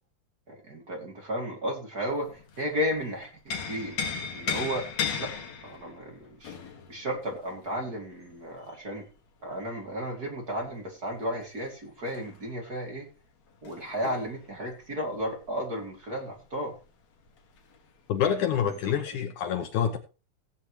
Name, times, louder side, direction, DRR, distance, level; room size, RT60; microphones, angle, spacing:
voice 1, 0.5-4.0 4.3-4.9 5.2-5.3 5.6-6.5 6.9-9.1 9.4-13.1 13.6-16.7, equal, 30° right, 1 dB, 2.3 m, -33 dB
sound 1, 2.1-2.9 3.2-8.7 10.7-16.4 16.7-16.8 17.2-17.9 18.7-18.9, left 6 dB, 55° left, 2.7 m, -37 dB
voice 2, 18.1-20.0, left 8 dB, 70° left, 6 dB, 2.1 m, -27 dB
17.0 x 8.9 x 3.1 m, 0.32 s
omnidirectional pair, 4.2 m